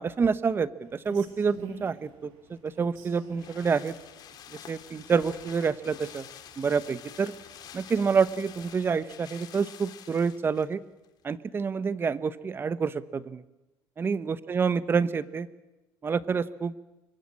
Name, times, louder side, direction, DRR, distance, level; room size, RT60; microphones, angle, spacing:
voice 1, 0.0-3.9 4.5-6.3 6.6-7.3 7.7-10.8 11.2-13.4 14.0-15.5 16.0-16.7, right 5 dB, 25° right, 15 dB, 1.0 m, -28 dB
Rain, 0.8-9.0, right 7 dB, 80° right, 6.3 m, -52 dB
sound 1, 2.6-10.7 11.0-11.1, left 10 dB, 55° left, 2.4 m, -48 dB
24.5 x 22.5 x 8.6 m, 1.0 s
cardioid pair, 120°, 8 cm